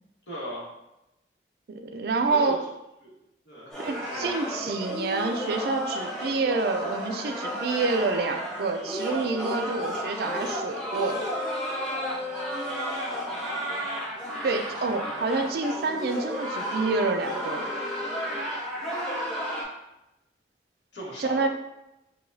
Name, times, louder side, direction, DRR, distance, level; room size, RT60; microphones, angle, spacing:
voice 1, 0.3-0.7 2.2-2.5 3.0-3.1 3.4-4.3 14.8-15.2 20.9-21.5, equal, 75° left, -7 dB, 1.5 m, -38 dB
voice 2, 1.7-2.6 3.8-11.3 14.4-17.7 21.2-21.5, right 3 dB, 55° right, 5 dB, 0.3 m, -28 dB
sound 1, 3.7-19.6, equal, 5° left, 0.7 m, -32 dB
4.7 x 2.3 x 2.6 m, 0.91 s
head